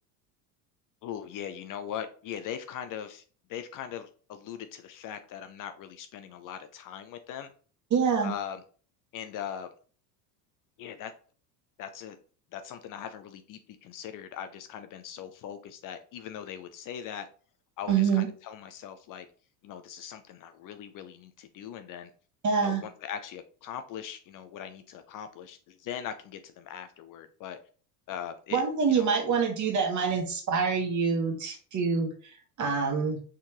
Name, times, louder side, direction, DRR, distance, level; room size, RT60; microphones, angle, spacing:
voice 1, 1.0-3.2 3.5-7.5 8.2-8.6 9.1-9.7 10.8-11.1 11.8-12.2 12.5-17.3 17.8-19.3 19.6-22.1 22.6-27.6 28.1-28.6 28.9-29.1, left 9 dB, 45° left, 9 dB, 0.5 m, -40 dB
voice 2, 7.9-8.3 17.9-18.3 22.4-22.8 28.5-33.2, right 6 dB, 35° right, 4 dB, 1.4 m, -26 dB
4.3 x 3.7 x 3.0 m, 0.41 s
hypercardioid pair, 85°, 49 cm